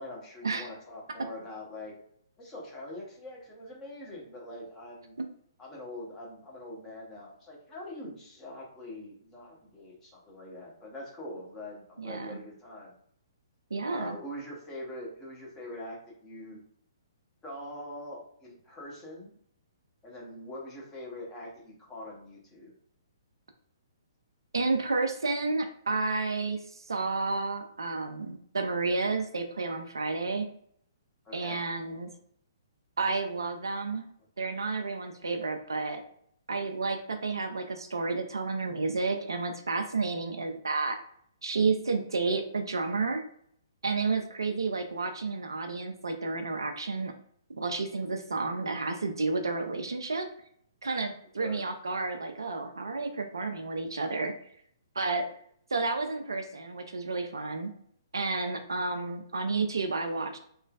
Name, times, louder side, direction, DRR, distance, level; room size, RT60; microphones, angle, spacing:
voice 1, 0.0-1.9 2.4-5.1 5.6-12.9 13.9-16.6 17.4-19.3 20.0-22.7 31.2-31.6 51.4-51.6, left 1 dB, 15° left, -4 dB, 1.1 m, -43 dB
voice 2, 12.0-12.4 13.7-14.2 24.5-26.6 26.9-30.5 31.3-32.1 33.0-34.0 34.4-36.0 36.5-41.0 41.4-43.2 43.8-47.1 47.5-50.3 50.8-54.3 55.0-55.3 55.7-57.7 58.1-60.4, right 3 dB, 70° right, 6 dB, 0.4 m, -31 dB
3.0 x 2.3 x 2.3 m, 0.65 s
figure-of-eight pair, 125°, 2 cm